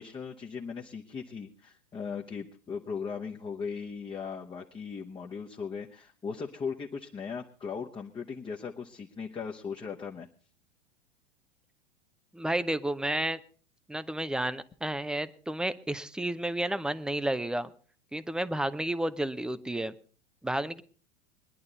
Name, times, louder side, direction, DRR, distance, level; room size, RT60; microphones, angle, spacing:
voice 1, 0.0-10.3, left 5 dB, 15° left, 1 dB, 1.0 m, -38 dB
voice 2, 12.3-13.4 13.9-17.7 18.1-19.9 20.4-20.8, right 1 dB, ahead, 14 dB, 0.5 m, -31 dB
21.5 x 11.0 x 4.0 m, 0.41 s
figure-of-eight pair, 90°, 33 cm